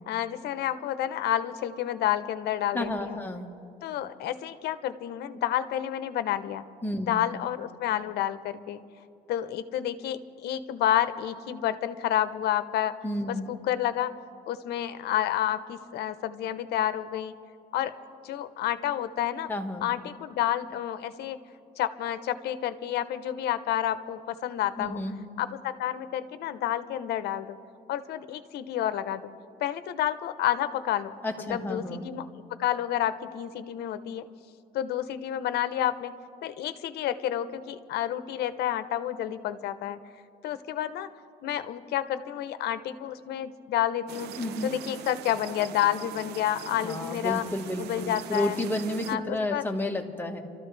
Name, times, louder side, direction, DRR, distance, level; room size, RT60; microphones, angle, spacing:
voice 1, 0.1-3.2 3.8-6.6 7.0-8.8 9.3-12.9 13.3-14.1 14.5-17.3 17.7-17.9 18.2-19.5 19.8-21.4 21.8-25.0 25.4-27.6 27.9-29.3 29.6-31.1 31.5-32.3 32.6-34.3 34.7-36.1 36.4-40.0 40.4-41.1 41.4-44.4 44.6-47.5 47.8-48.6 49.1-49.6, left 11 dB, 75° left, 12 dB, 0.8 m, -29 dB
voice 2, 2.7-3.5 6.8-7.2 13.0-13.5 19.5-19.9 24.8-25.1 31.2-32.1 44.4-44.7 46.8-50.4, left 1 dB, 10° left, 2 dB, 1.5 m, -31 dB
sound 1, 44.1-49.2, right 10 dB, 75° right, 0.7 m, -42 dB
28.0 x 13.5 x 3.3 m, 2.6 s
cardioid pair, 110°, 17 cm